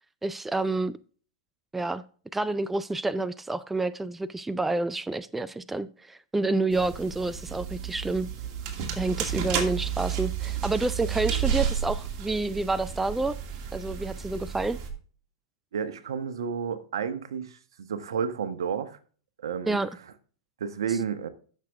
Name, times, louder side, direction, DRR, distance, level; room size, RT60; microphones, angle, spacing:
voice 1, 0.2-1.0 1.7-2.0 2.3-8.3 9.0-13.4 13.7-14.8 19.7-19.9, right 2 dB, 5° right, 0.4 m, -29 dB
sound 1, 6.7-14.9, right 8 dB, 40° right, 2.4 m, -32 dB
voice 2, 15.7-19.0 19.4-19.8 20.6-21.3, right 7 dB, 75° right, 1.1 m, -31 dB
12.0 x 6.7 x 3.5 m
hypercardioid pair, 105°, 2 cm